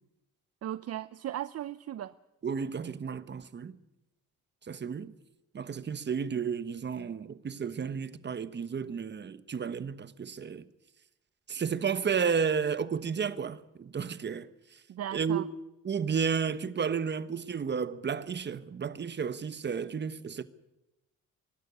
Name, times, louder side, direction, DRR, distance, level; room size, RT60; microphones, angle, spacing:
voice 1, 0.6-2.1 14.9-15.4, right 11 dB, 55° right, 0.6 m, -37 dB
voice 2, 2.4-3.8 4.6-5.1 5.5-10.7 11.5-14.8 15.1-15.4 15.8-20.4, right 6 dB, 35° right, 1.2 m, -32 dB
24.0 x 12.0 x 9.5 m
cardioid pair, 90°, 30 cm